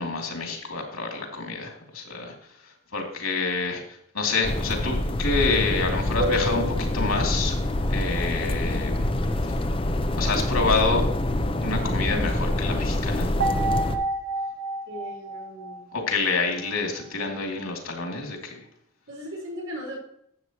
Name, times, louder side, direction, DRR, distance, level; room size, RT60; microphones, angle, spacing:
voice 1, 0.0-2.3 2.9-3.8 4.1-7.5 7.9-9.1 10.1-11.0 11.6-13.3 15.9-18.6, left 3 dB, 90° left, 1 dB, 2.9 m, -27 dB
sound 1, 4.4-14.0, left 1 dB, 25° left, 0.6 m, -26 dB
sound 2, 6.2-7.7 13.4-16.7, right 1 dB, 65° right, 1.3 m, -30 dB
voice 2, 14.9-15.9 19.1-20.0, equal, 80° right, -1 dB, 4.6 m, -37 dB
12.5 x 8.3 x 3.0 m, 0.71 s
head